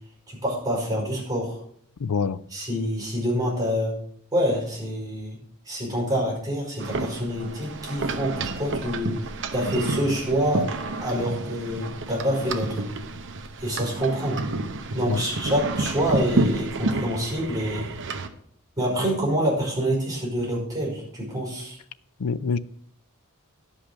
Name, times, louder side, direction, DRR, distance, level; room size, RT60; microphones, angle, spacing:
voice 1, 0.3-1.6 2.5-3.9 4.3-5.4 5.7-9.1 9.5-10.7 11.0-12.9 13.6-14.4 14.9-17.9 18.8-21.8, equal, 15° right, 5.2 m, -26 dB
voice 2, 2.0-2.4 15.1-15.2 22.2-22.6, left 5 dB, 90° left, 0.5 m, -25 dB
sound 1, 6.8-18.3, right 2 dB, 55° right, 1.0 m, -30 dB
11.5 x 5.6 x 7.5 m
head